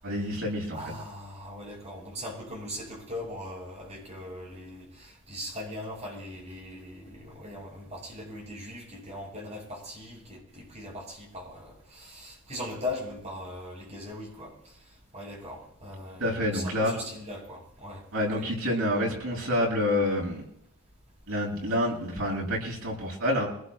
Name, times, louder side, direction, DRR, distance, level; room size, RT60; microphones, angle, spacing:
voice 1, 0.0-0.8 16.2-16.9 18.1-20.4 21.3-23.5, left 1 dB, 85° right, -4 dB, 7.6 m, -28 dB
voice 2, 0.7-14.8 15.1-18.0 18.4-18.5, left 1 dB, 30° right, -3 dB, 7.5 m, -40 dB
26.5 x 19.5 x 2.3 m, 0.72 s
head